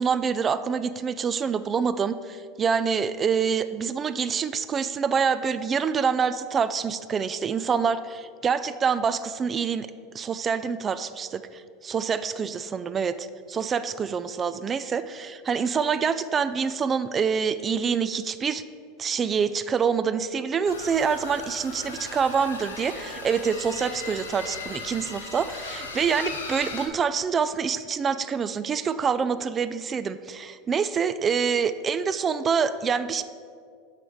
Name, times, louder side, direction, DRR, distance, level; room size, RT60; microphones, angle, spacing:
voice 1, 0.0-9.9 10.1-18.6 19.0-33.2, right 6 dB, 30° right, 13 dB, 0.3 m, -26 dB
sound 1, 20.7-26.9, left 4 dB, 85° left, 0.9 m, -37 dB
6.1 x 5.0 x 6.0 m, 2.2 s
hypercardioid pair, 85°, 0 cm